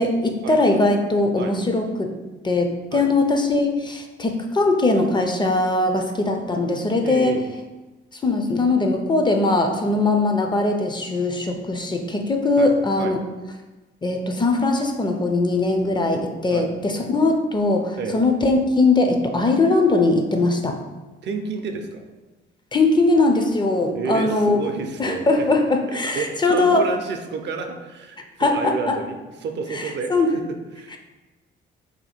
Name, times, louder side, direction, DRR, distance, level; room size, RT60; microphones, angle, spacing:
voice 1, 0.0-2.1 2.4-7.3 8.1-13.2 14.0-20.8 22.7-24.6 25.0-26.9 28.4-29.0 29.7-30.3 30.9-31.0, left 2 dB, 25° left, 4 dB, 0.4 m, -20 dB
voice 2, 7.0-7.4 12.6-12.7 13.0-13.1 16.5-16.7 18.0-18.2 21.2-22.0 23.9-25.5 26.0-30.9, right 4 dB, 60° right, 5 dB, 0.5 m, -30 dB
2.7 x 2.6 x 4.2 m, 1.1 s
cardioid pair, 90°, 20 cm